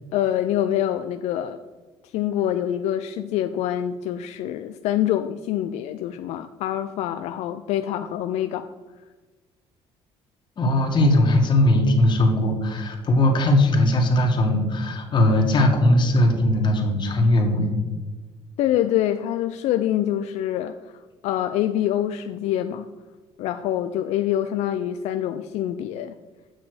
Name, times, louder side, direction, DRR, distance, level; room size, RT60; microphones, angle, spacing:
voice 1, 0.1-1.6 2.0-8.7 18.6-22.9 23.4-26.1, left 11 dB, 80° left, 9 dB, 0.4 m, -25 dB
voice 2, 10.6-17.7, left 1 dB, 45° left, 2 dB, 1.7 m, -19 dB
8.0 x 5.9 x 4.8 m, 1.3 s
cardioid pair, 110°, 11 cm